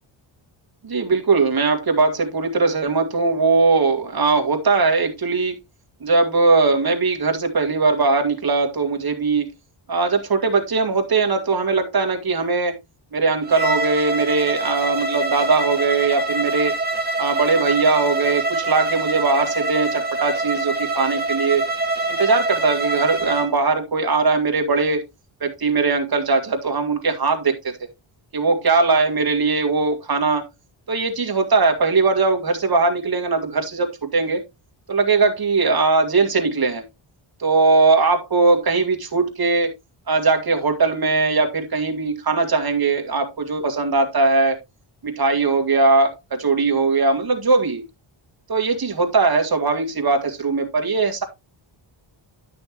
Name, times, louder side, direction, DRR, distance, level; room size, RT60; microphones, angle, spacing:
voice 1, 0.8-5.6 6.0-9.5 9.9-12.8 13.1-16.7 17.2-21.6 22.2-25.0 25.4-27.7 28.3-30.4 30.9-34.4 34.9-36.8 37.4-39.7 40.1-44.6 45.0-47.8 48.5-51.2, right 3 dB, 45° right, 4 dB, 2.1 m, -20 dB
Bowed string instrument, 13.4-23.5, right 2 dB, 20° right, 1.7 m, -25 dB
11.0 x 6.3 x 3.0 m, 0.22 s
wide cardioid pair, 110°, 50 cm